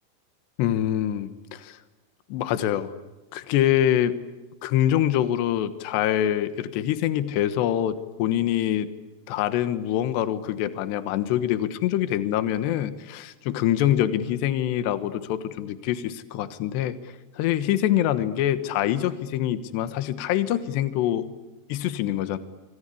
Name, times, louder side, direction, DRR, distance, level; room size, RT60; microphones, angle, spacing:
voice 1, 0.6-1.8 2.3-2.9 3.3-4.1 4.6-8.9 9.3-17.0 17.4-21.3 21.7-22.4, left 11 dB, 75° left, 12 dB, 3.4 m, -25 dB
26.5 x 25.5 x 8.5 m, 1.1 s
omnidirectional pair, 5.0 m